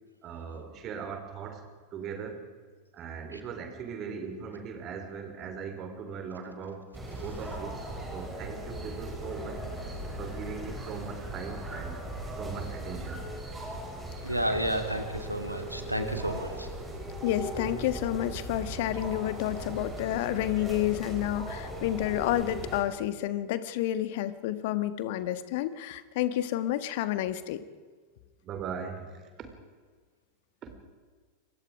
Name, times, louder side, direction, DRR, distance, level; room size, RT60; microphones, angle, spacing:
voice 1, 0.2-2.5 2.9-6.9 7.2-7.8 8.1-9.6 10.2-12.0 12.4-13.3 28.4-29.5 30.6-30.8, right 6 dB, 30° right, 6 dB, 4.1 m, -39 dB
sound 1, 6.9-22.8, right 1 dB, 10° right, 7.7 m, -38 dB
voice 2, 14.2-16.7, equal, 90° right, 6 dB, 2.7 m, -31 dB
voice 3, 17.2-27.6, left 13 dB, 50° left, 13 dB, 1.5 m, -30 dB
28.0 x 23.5 x 5.0 m, 1.6 s
figure-of-eight pair, 90°, 0 cm